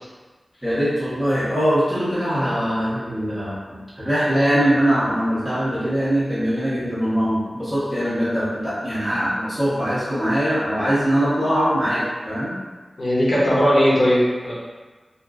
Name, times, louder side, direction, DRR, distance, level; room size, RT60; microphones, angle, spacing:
voice 1, 0.6-12.5, equal, 10° right, -12 dB, 1.4 m, -22 dB
voice 2, 13.0-14.5, equal, 80° left, -8 dB, 0.8 m, -18 dB
2.8 x 2.5 x 2.4 m, 1.3 s
wide cardioid pair, 85°, 0 cm